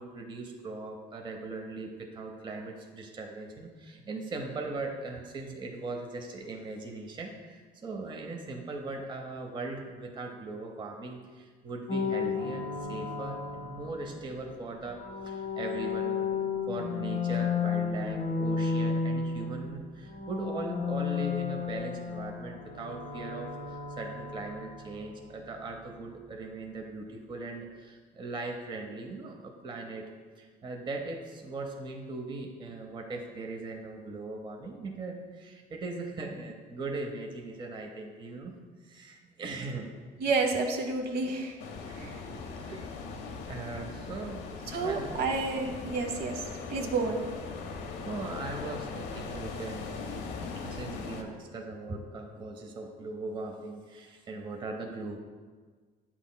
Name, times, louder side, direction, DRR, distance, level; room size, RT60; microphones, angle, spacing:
voice 1, 0.0-16.3 16.7-30.1 30.4-38.6 38.8-39.9 41.8-42.1 42.4-42.9 43.5-45.2 48.1-55.2, right 3 dB, 30° right, 3 dB, 0.6 m, -39 dB
sound 1, 11.9-14.3 14.9-19.8 20.1-25.0, left 5 dB, 50° left, 0.7 m, -33 dB
voice 2, 40.2-41.6 41.9-42.3 42.7-42.8 44.7-46.4 46.7-47.2, right 4 dB, 70° right, 3 dB, 0.9 m, -30 dB
sound 2, 41.6-51.2, left 4 dB, 85° left, 0.7 m, -40 dB
8.1 x 5.7 x 2.2 m, 1.5 s
cardioid pair, 110°, 17 cm